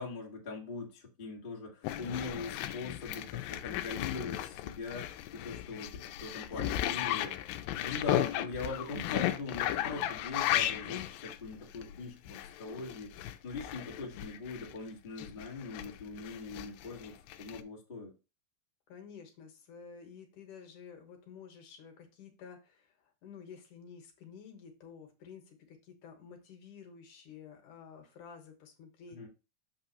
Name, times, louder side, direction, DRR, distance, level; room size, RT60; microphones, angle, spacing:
voice 1, 0.0-7.4 7.7-18.1 29.1-29.3, left 3 dB, 50° left, -1 dB, 0.6 m, -41 dB
sound 1, 1.8-14.8 15.2-17.6, left 13 dB, 85° left, 2.3 m, -35 dB
voice 2, 18.9-29.3, left 6 dB, 65° left, 4 dB, 2.4 m, -51 dB
6.6 x 5.9 x 2.9 m, 0.30 s
omnidirectional pair, 4.1 m